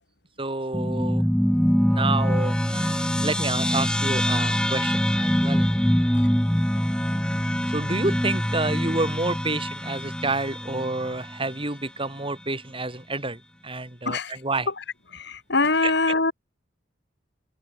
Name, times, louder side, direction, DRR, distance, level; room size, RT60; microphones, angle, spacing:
voice 1, 0.4-1.2 1.9-5.7 6.9-7.1 7.7-14.7 15.8-15.9, right 2 dB, 30° right, 6.5 m, -29 dB
sound 1, 0.7-11.5, equal, 5° left, 1.2 m, -24 dB
voice 2, 15.1-16.3, left 3 dB, 65° left, 4.1 m, -23 dB
open air
head